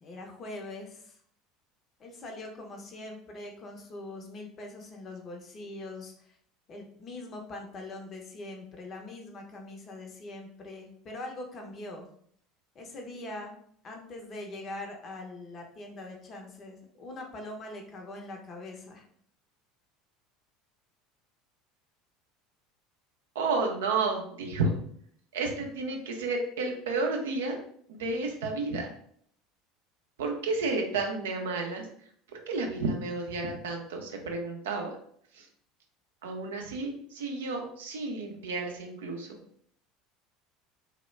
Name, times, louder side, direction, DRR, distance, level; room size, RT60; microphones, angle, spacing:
voice 1, 0.0-1.2 2.0-6.4 6.7-12.1 12.7-13.5 13.8-19.0, left 2 dB, 40° left, 2 dB, 0.6 m, -42 dB
voice 2, 23.3-24.7 25.3-27.6 27.9-28.9 30.2-31.9 32.3-35.0 35.3-35.5 36.2-39.4, right 3 dB, 70° right, 2 dB, 0.4 m, -31 dB
2.2 x 2.0 x 3.1 m, 0.63 s
figure-of-eight pair, 70°, 0 cm